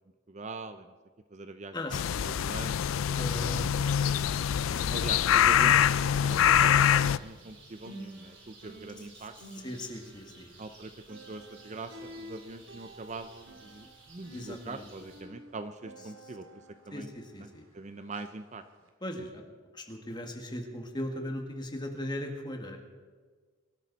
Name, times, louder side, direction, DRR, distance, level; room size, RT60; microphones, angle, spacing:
voice 1, 0.3-0.9 1.3-1.8 2.2-2.8 3.1-3.5 4.9-9.3 10.6-11.9 12.2-16.6 16.9-17.1 17.4-17.5 17.7-18.6, right 3 dB, 35° right, 10 dB, 0.6 m, -43 dB
voice 2, 1.7-2.1 3.2-3.7 9.0-9.1 9.5-10.5 14.3-14.9 16.2-16.3 16.9-17.6 19.0-19.4 19.7-22.8, left 1 dB, 20° left, 3 dB, 1.8 m, -38 dB
sound 1, 1.9-7.2, left 9 dB, 85° left, 0.4 m, -24 dB
sound 2, 2.3-4.4 4.6-17.7 18.1-18.3 18.8-18.9, equal, 80° right, 2.2 m, -51 dB
sound 3, 3.1-15.2, right 3 dB, 60° right, 4.1 m, -56 dB
23.0 x 13.0 x 4.1 m, 1.5 s
head